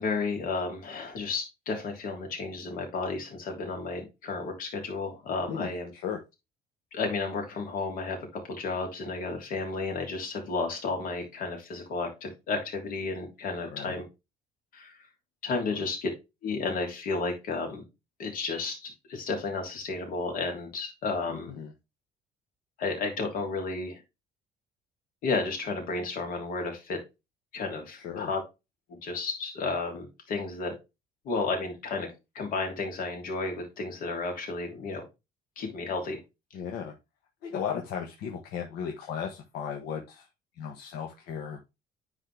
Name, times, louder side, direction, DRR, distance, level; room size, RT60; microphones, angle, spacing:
voice 1, 0.0-5.9 6.9-14.0 14.7-15.0 15.4-16.1 16.4-17.8 18.2-21.5 22.8-24.0 25.2-27.0 27.5-28.4 28.9-30.7 31.2-35.0 35.6-36.2, left 3 dB, 65° left, 3 dB, 3.3 m, -32 dB
voice 2, 5.5-6.2 13.7-13.9 21.3-21.7 28.0-28.3 36.5-36.9 37.4-40.3 40.6-41.6, left 7 dB, 80° left, 2 dB, 1.5 m, -36 dB
10.0 x 4.3 x 3.4 m, 0.24 s
cardioid pair, 145°, 16 cm